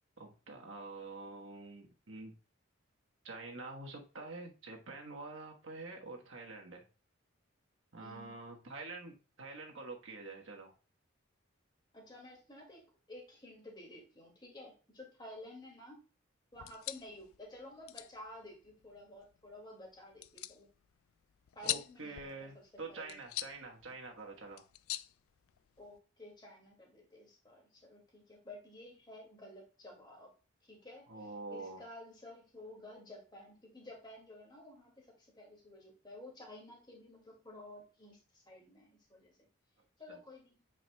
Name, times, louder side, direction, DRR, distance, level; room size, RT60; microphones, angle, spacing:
voice 1, 0.2-2.3 3.2-6.9 7.9-10.7 21.6-24.6 31.1-31.8 40.1-40.2, right 3 dB, 65° right, 1 dB, 1.3 m, -47 dB
voice 2, 8.0-8.4 11.9-12.8 13.1-16.0 16.5-20.7 21.5-22.5 22.9-23.2 25.8-30.3 30.6-39.5 40.0-40.6, left 1 dB, 20° left, 0 dB, 2.1 m, -52 dB
sound 1, 16.5-26.0, left 15 dB, 80° left, 0.3 m, -45 dB
8.8 x 5.0 x 2.3 m, 0.35 s
head